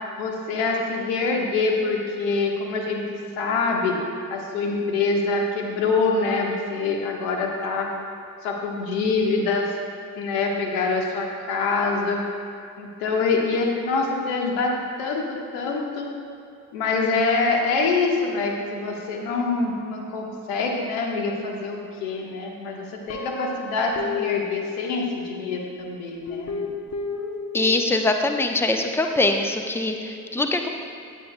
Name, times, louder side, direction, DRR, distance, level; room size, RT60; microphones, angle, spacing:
voice 1, 0.2-3.0 3.4-4.0 4.3-7.9 8.4-9.7 10.1-12.2 12.8-16.1 16.7-26.7, left 4 dB, 65° left, 1 dB, 1.4 m, -25 dB
Guitar, 23.1-25.6 26.3-28.2, left 5 dB, 35° left, 1.0 m, -32 dB
voice 2, 27.5-30.7, left 2 dB, 5° left, 5 dB, 0.8 m, -23 dB
16.5 x 9.8 x 2.3 m, 2.6 s
figure-of-eight pair, 45°, 46 cm